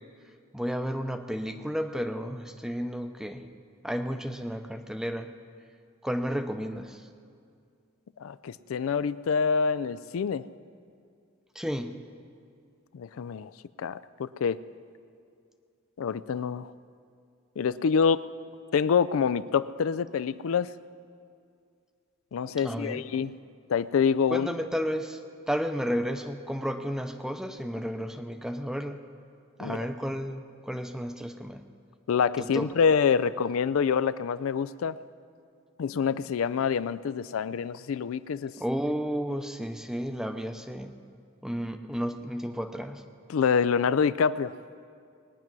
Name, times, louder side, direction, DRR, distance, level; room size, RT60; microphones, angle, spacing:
voice 1, 0.5-3.5 3.8-5.3 6.0-7.1 11.5-12.0 22.6-23.3 24.3-25.2 25.5-29.0 29.6-31.6 32.4-32.7 38.6-40.9 41.4-43.0, equal, 5° right, 7 dB, 0.6 m, -32 dB
voice 2, 8.2-10.5 12.9-13.5 13.8-14.6 16.0-16.7 17.6-18.3 18.7-20.7 22.3-23.3 23.7-24.5 29.6-29.8 32.1-35.0 35.8-38.5 43.3-44.5, left 6 dB, 80° left, 16 dB, 0.4 m, -26 dB
20.0 x 9.6 x 6.1 m, 2.3 s
head